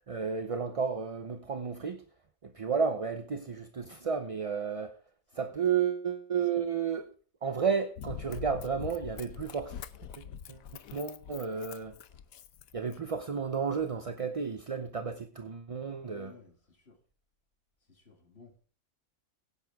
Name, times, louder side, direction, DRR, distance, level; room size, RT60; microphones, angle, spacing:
voice 1, 0.1-2.0 2.4-5.0 5.3-7.1 7.4-9.7 10.2-12.0 12.7-16.3, right 6 dB, 35° right, 0.6 m, -32 dB
Run, 8.0-13.2 13.8-13.9, left 8 dB, 80° left, 1.2 m, -44 dB
voice 2, 16.0-17.0 17.9-18.6, left 5 dB, 45° left, 2.3 m, -56 dB
16.5 x 9.9 x 3.5 m
omnidirectional pair, 1.4 m